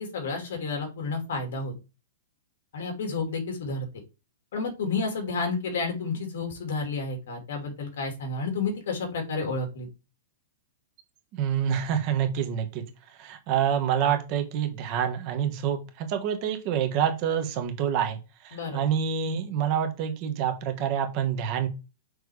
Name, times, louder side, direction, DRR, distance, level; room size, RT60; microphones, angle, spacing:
voice 1, 0.0-1.7 2.7-3.9 4.5-9.9 18.5-18.8, left 4 dB, 65° left, 3 dB, 2.6 m, -31 dB
voice 2, 11.3-12.8 13.2-18.2 18.4-21.7, right 8 dB, 35° right, 5 dB, 1.2 m, -27 dB
6.4 x 3.4 x 4.8 m, 0.30 s
supercardioid pair, 165°, 0 cm